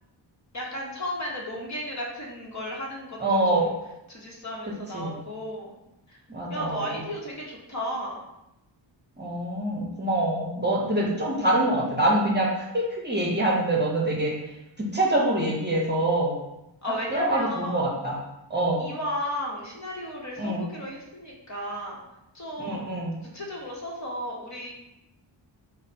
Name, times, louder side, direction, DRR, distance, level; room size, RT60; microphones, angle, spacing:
voice 1, 0.5-3.7 4.1-5.8 6.1-6.2 6.5-8.2 16.8-17.9 18.8-22.0 22.3-23.0 23.2-24.8, equal, 40° left, -2 dB, 0.9 m, -34 dB
voice 2, 3.2-3.6 4.9-5.1 6.3-7.0 9.2-16.4 17.1-18.2 18.5-18.9 20.4-20.6 22.6-23.2, right 1 dB, 25° right, -3 dB, 0.8 m, -25 dB
4.8 x 2.0 x 4.1 m, 0.89 s
wide cardioid pair, 130°, 46 cm